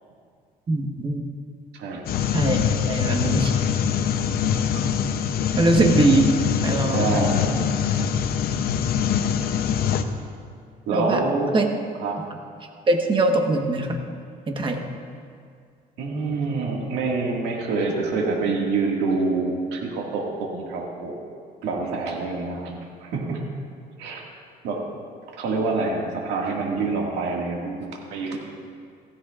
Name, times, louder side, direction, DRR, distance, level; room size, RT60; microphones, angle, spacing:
voice 1, 0.7-1.2 2.3-2.6 2.9-3.5 5.6-6.3 6.6-7.0 10.9-11.2 11.5-11.7 12.9-14.0 14.5-14.8, right 2 dB, 30° right, 3 dB, 1.3 m, -21 dB
voice 2, 1.7-2.1 6.9-7.6 10.9-11.6 12.0-12.2 16.0-21.2 21.6-23.4 24.0-24.2 24.6-24.8 25.4-28.4, right 3 dB, 90° right, -1 dB, 2.0 m, -26 dB
sound 1, 2.1-10.0, left 8 dB, 65° left, 0.7 m, -23 dB
16.0 x 14.5 x 2.5 m, 2.2 s
cardioid pair, 110°, 17 cm